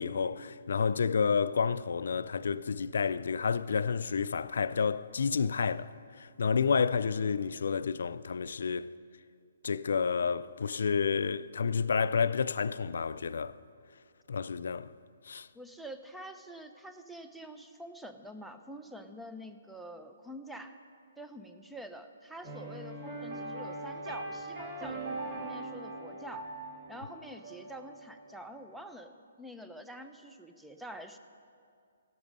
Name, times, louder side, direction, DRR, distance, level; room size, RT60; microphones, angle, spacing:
voice 1, 0.0-5.9 6.4-8.9 9.6-13.6 14.3-14.9 15.3-15.5, left 6 dB, 70° left, 0.3 m, -30 dB
voice 2, 15.5-20.8 21.2-26.5 26.9-29.1 29.4-31.2, right 1 dB, 5° right, 0.6 m, -46 dB
sound 1, 22.4-28.7, right 2 dB, 35° right, 2.9 m, -41 dB
17.0 x 6.2 x 5.4 m
hypercardioid pair, 140°, 0 cm